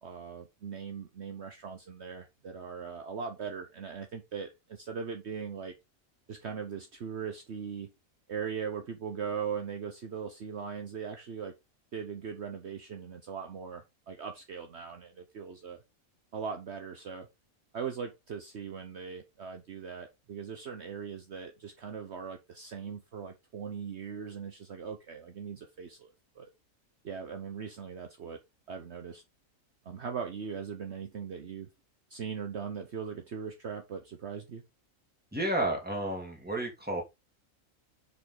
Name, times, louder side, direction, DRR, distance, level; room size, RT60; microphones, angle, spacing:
voice 1, 0.0-5.7 6.3-7.9 8.3-11.5 11.9-15.8 16.3-17.3 17.7-26.5 27.0-28.4 28.7-29.2 29.8-31.7 32.1-34.6, right 6 dB, 55° right, 1.2 m, -40 dB
voice 2, 35.3-37.0, right 1 dB, 5° right, 2.7 m, -31 dB
7.2 x 5.3 x 3.9 m
omnidirectional pair, 1.4 m